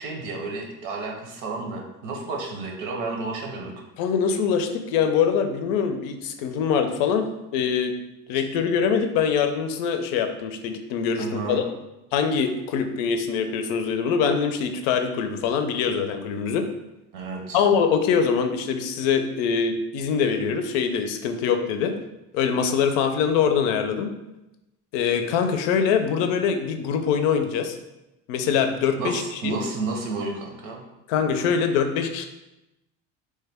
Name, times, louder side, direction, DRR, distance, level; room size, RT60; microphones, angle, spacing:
voice 1, 0.0-3.7 11.2-11.6 17.1-17.6 29.0-30.8, right 3 dB, 85° right, 1 dB, 0.9 m, -31 dB
voice 2, 4.0-7.3 7.5-8.0 8.3-11.6 12.1-16.7 17.5-21.9 22.3-24.1 24.9-27.8 28.3-29.6 31.1-32.3, left 6 dB, 85° left, 7 dB, 0.5 m, -23 dB
3.1 x 2.2 x 3.4 m, 0.95 s
cardioid pair, 120°, 36 cm